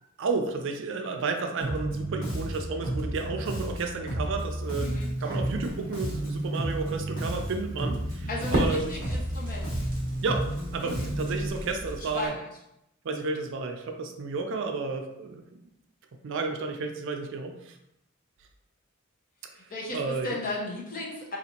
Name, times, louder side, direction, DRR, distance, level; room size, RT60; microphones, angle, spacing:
voice 1, 0.2-8.8 10.2-12.3 13.0-15.6 16.2-17.8 19.6-20.3, right 4 dB, 60° right, 4 dB, 0.4 m, -32 dB
Bass guitar, 1.6-11.5, right 1 dB, 65° left, 1.2 m, -32 dB
Crackle, 4.5-12.3, equal, 40° right, 0.8 m, -37 dB
voice 2, 8.3-9.9 10.8-11.1 12.1-12.5 19.5-21.4, left 2 dB, 40° left, -4 dB, 0.9 m, -35 dB
4.0 x 2.5 x 2.8 m, 0.83 s
head